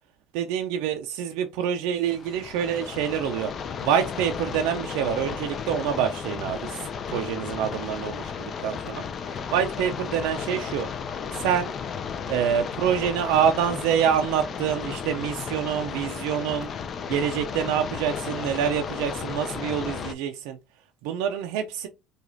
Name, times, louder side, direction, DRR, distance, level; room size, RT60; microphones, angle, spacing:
voice 1, 0.3-3.5 3.8-6.8 7.1-10.9 11.4-11.7 12.3-16.7 17.1-20.6 21.0-21.9, right 8 dB, 85° right, 0.4 m, -26 dB
sound 1, 2.0-20.1, left 6 dB, 45° left, 0.4 m, -34 dB
4.7 x 2.3 x 2.5 m
supercardioid pair, 100°, 0 cm